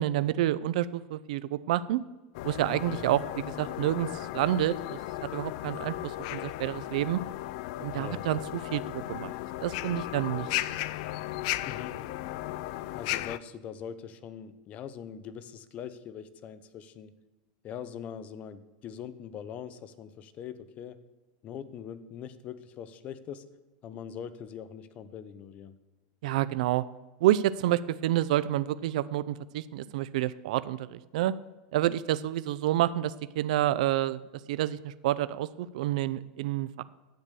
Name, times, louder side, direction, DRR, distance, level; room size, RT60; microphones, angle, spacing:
voice 1, 0.0-2.0 2.4-3.2 3.6-7.2 7.8-8.4 8.7-9.3 9.6-10.5 26.2-26.8 27.2-31.3 31.7-34.2 34.5-36.8, right 13 dB, 75° right, 16 dB, 0.4 m, -28 dB
sound 1, 2.3-13.4, left 16 dB, 60° left, 0.4 m, -36 dB
voice 2, 2.7-3.0 7.9-8.2 11.6-12.0 12.9-17.1 17.6-21.0 21.4-23.5 23.8-25.8, left 8 dB, 35° left, 13 dB, 0.8 m, -42 dB
10.5 x 8.2 x 6.8 m, 1.1 s
supercardioid pair, 145°, 4 cm